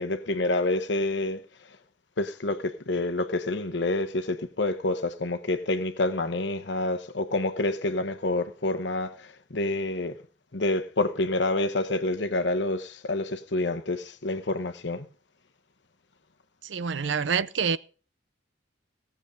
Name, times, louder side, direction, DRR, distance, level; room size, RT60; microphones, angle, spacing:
voice 1, 0.0-1.4 2.2-10.2 10.5-15.1, left 2 dB, 65° left, 1.1 m, -28 dB
voice 2, 16.6-17.8, right 6 dB, 70° right, 0.6 m, -27 dB
17.5 x 7.1 x 5.1 m
head